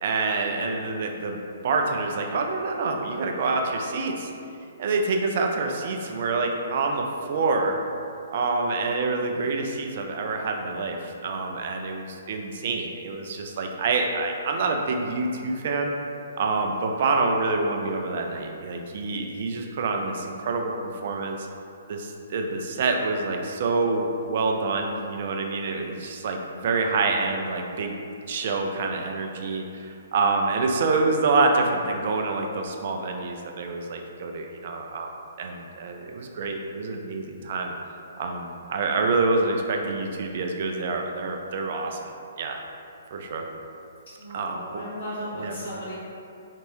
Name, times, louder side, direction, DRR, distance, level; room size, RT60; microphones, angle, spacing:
voice 1, 0.0-4.3 4.8-7.8 8.3-15.9 16.4-21.5 21.9-27.9 28.3-35.1 35.4-37.7 38.2-42.0 42.4-42.6 43.1-43.5 44.3-44.6 45.3-45.6, right 3 dB, 45° right, 2 dB, 0.3 m, -27 dB
voice 2, 44.2-45.9, equal, 55° left, -11 dB, 1.0 m, -36 dB
2.9 x 2.6 x 3.0 m, 2.5 s
figure-of-eight pair, 125°, 0 cm